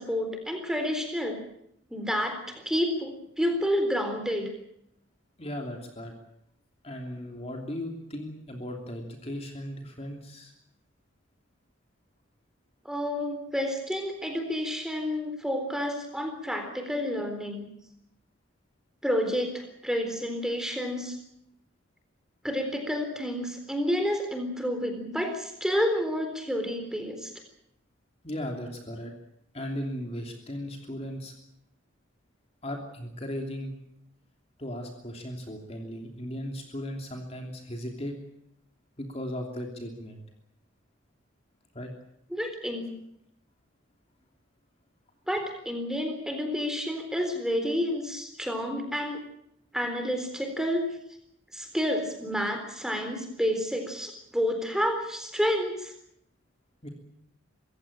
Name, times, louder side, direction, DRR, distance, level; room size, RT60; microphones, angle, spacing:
voice 1, 0.0-1.4 1.9-4.5 12.9-17.6 19.0-21.2 22.4-27.3 42.3-42.9 45.3-49.2 49.7-50.8 51.5-55.9, equal, 5° right, 5 dB, 3.8 m, -29 dB
voice 2, 5.4-6.1 6.8-10.5 28.2-29.1 29.5-31.3 32.6-33.7 34.6-38.2 39.0-40.2 41.7-41.9 56.8-56.9, equal, 30° left, 2 dB, 3.0 m, -37 dB
25.0 x 16.0 x 8.8 m, 0.75 s
head